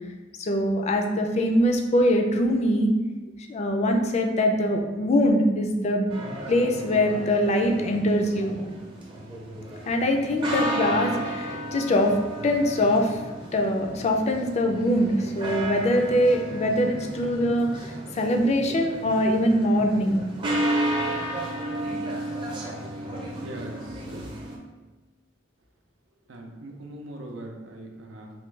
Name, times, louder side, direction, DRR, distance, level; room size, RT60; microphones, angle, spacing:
voice 1, 0.4-2.9 3.5-6.1 6.5-8.6 9.9-12.2 12.4-13.2 13.5-20.2, left 1 dB, 35° left, 3 dB, 0.4 m, -23 dB
sound 1, 6.1-24.6, right 1 dB, 25° right, 0.6 m, -33 dB
voice 2, 23.4-24.3 26.3-28.3, right 1 dB, 90° right, 2 dB, 0.5 m, -40 dB
4.3 x 2.2 x 3.1 m, 1.2 s
head